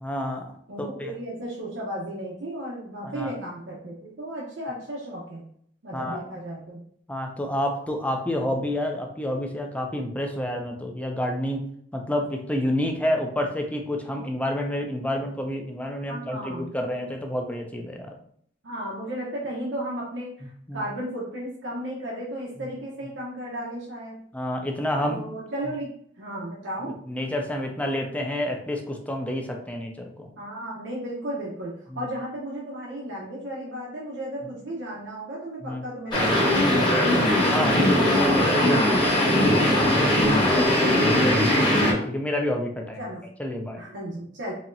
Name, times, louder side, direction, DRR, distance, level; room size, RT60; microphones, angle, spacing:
voice 1, 0.0-0.5 0.8-1.1 3.0-3.3 5.9-6.2 7.1-11.6 11.9-18.1 20.7-20.8 24.3-25.2 26.8-30.3 31.9-32.0 35.6-35.8 37.5-38.0 40.5-40.6 41.7-43.0 43.4-43.8, left 1 dB, 10° left, 3 dB, 0.5 m, -29 dB
voice 2, 0.7-5.4 5.8-6.8 16.1-16.7 18.6-24.2 25.0-26.9 30.4-37.2 37.6-40.2 40.5-41.7 43.0-43.2 43.8-44.5, right 1 dB, 75° right, -5 dB, 0.8 m, -34 dB
sound 1, 36.1-41.9, left 1 dB, 25° left, 1.3 m, -20 dB
4.2 x 2.9 x 2.6 m, 0.65 s
head